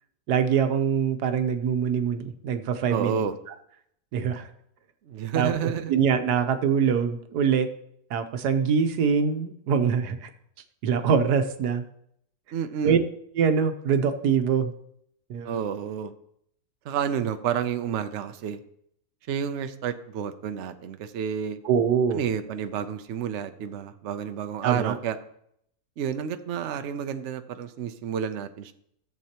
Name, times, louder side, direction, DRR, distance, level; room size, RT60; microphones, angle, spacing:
voice 1, 0.3-3.2 4.1-4.5 5.3-7.7 8.1-10.3 10.8-11.8 12.8-13.0 13.4-14.7 15.3-15.6 21.6-22.2 24.6-25.0, right 7 dB, 85° right, 8 dB, 1.4 m, -24 dB
voice 2, 2.9-3.4 5.1-5.9 12.5-13.0 15.4-16.1 16.8-18.6 19.3-21.6 22.1-25.2 26.0-28.7, right 8 dB, 60° right, 9 dB, 0.8 m, -30 dB
14.0 x 7.4 x 2.9 m, 0.71 s
omnidirectional pair, 1.7 m